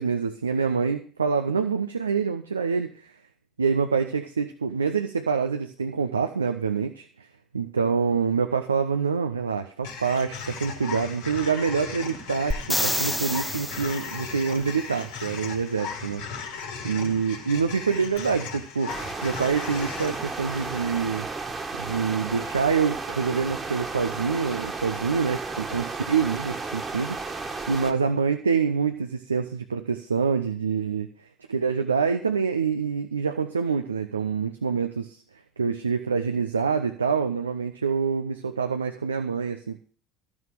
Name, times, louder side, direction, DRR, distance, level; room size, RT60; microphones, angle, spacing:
voice 1, 0.0-3.1 3.6-7.3 7.5-16.2 16.8-21.3 21.8-31.1 31.5-35.2 35.6-39.8, right 5 dB, 85° right, 6 dB, 0.6 m, -26 dB
sound 1, 9.8-22.2, left 5 dB, 70° left, 2.5 m, -37 dB
sound 2, 12.5-14.3 18.2-18.3, equal, ahead, 1.3 m, -28 dB
sound 3, 18.9-27.9, right 3 dB, 25° right, 1.7 m, -33 dB
12.5 x 6.3 x 7.5 m, 0.43 s
figure-of-eight pair, 65°, 0 cm